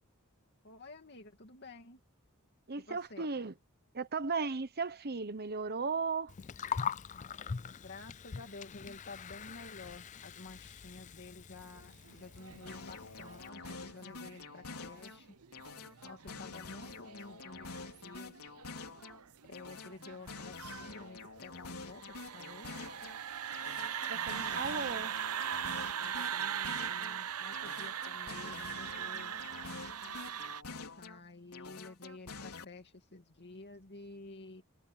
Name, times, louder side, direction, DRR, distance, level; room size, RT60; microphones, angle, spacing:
voice 1, 0.6-2.0 2.9-3.4 7.8-15.4 16.0-18.5 19.5-22.9 24.1-25.1 25.8-29.3 30.9-34.6, left 3 dB, 50° left, 2.4 m, -51 dB
voice 2, 2.7-3.5 3.9-6.3 24.1-25.1, right 4 dB, 45° right, 1.1 m, -36 dB
Gurgling, 6.3-13.5, left 6 dB, 35° left, 0.4 m, -43 dB
sound 1, 11.8-30.6, right 9 dB, 85° right, 0.8 m, -41 dB
sound 2, 12.7-15.2 15.5-19.2 19.5-23.2 23.5-27.2 27.5-31.2 31.5-32.6, left 4 dB, 85° left, 4.0 m, -47 dB
head